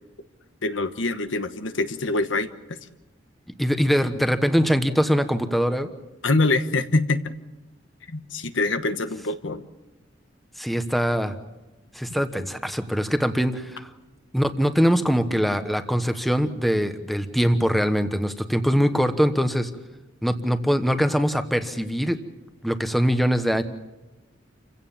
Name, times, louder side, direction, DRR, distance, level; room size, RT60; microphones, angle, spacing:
voice 1, 0.6-2.5 6.2-7.3 8.1-9.6, left 2 dB, 80° left, 10 dB, 1.2 m, -24 dB
voice 2, 3.6-5.9 10.6-11.3 11.9-13.9 14.3-19.7 20.2-22.2 22.6-23.6, equal, ahead, 8 dB, 1.2 m, -22 dB
28.5 x 16.5 x 7.3 m, 1.1 s
head